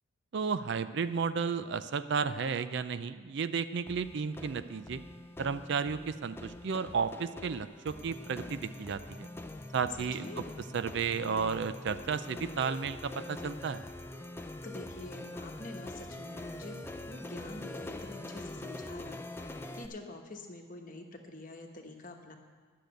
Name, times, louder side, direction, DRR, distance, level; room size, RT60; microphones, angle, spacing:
voice 1, 0.3-5.0 5.4-9.3 9.7-10.3 10.7-13.8, right 5 dB, 55° right, 12 dB, 0.4 m, -33 dB
sound 1, 3.9-19.9, left 1 dB, 10° left, 0.4 m, -44 dB
voice 2, 9.9-10.5 14.6-22.3, left 2 dB, 40° left, 3 dB, 1.1 m, -46 dB
10.5 x 6.6 x 9.0 m, 1.5 s
head